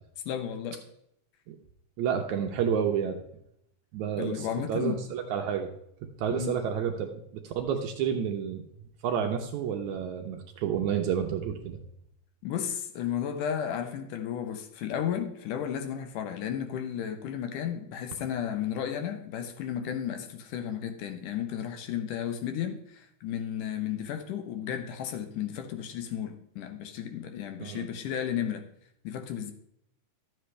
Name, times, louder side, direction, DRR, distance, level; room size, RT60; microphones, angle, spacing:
voice 1, 0.3-0.8 4.1-5.0 6.3-6.6 12.4-28.7 29.0-29.5, left 9 dB, 75° left, 2.3 m, -33 dB
voice 2, 2.0-3.2 3.9-5.7 6.2-8.6 9.0-11.8 27.6-27.9, right 8 dB, 75° right, 1.9 m, -30 dB
12.0 x 7.7 x 3.3 m
omnidirectional pair, 3.9 m